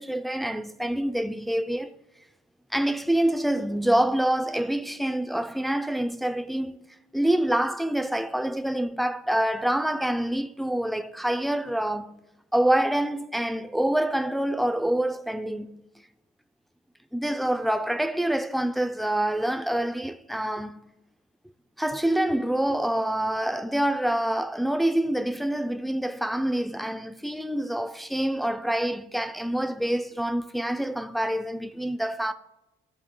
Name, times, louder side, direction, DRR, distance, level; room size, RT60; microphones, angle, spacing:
voice 1, 0.0-1.9 2.7-6.8 7.1-12.2 12.5-15.8 17.1-20.9 21.8-32.3, right 1 dB, ahead, 0.4 m, -26 dB
13.0 x 4.4 x 3.7 m
cardioid pair, 90°, 20 cm